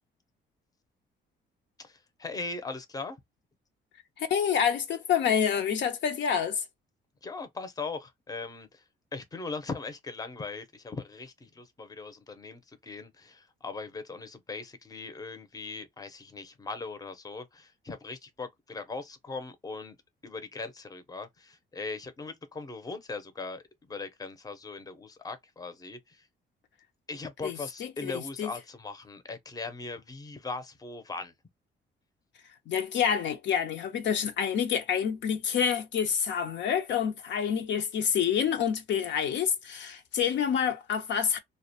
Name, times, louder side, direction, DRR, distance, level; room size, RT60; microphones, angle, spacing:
voice 1, 1.8-3.2 7.2-19.9 20.2-23.6 23.9-26.3 27.1-31.3, left 3 dB, 20° left, 0.6 m, -39 dB
voice 2, 4.2-6.6 27.4-28.5 32.7-41.4, left 8 dB, 65° left, 0.5 m, -28 dB
2.4 x 2.2 x 2.7 m
cardioid pair, 90°, 20 cm